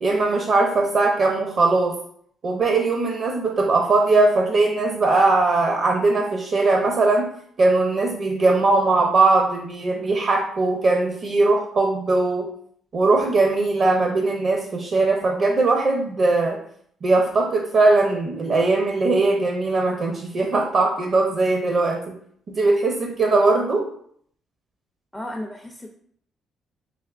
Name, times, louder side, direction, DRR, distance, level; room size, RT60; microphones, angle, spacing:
voice 1, 0.0-1.9 2.4-7.3 7.6-12.5 12.9-16.6 17.0-22.1 22.5-23.9, right 3 dB, 50° right, 1 dB, 0.6 m, -20 dB
voice 2, 25.1-25.9, left 1 dB, 5° left, 2 dB, 0.4 m, -34 dB
3.4 x 3.1 x 2.4 m, 0.63 s
cardioid pair, 90°, 0 cm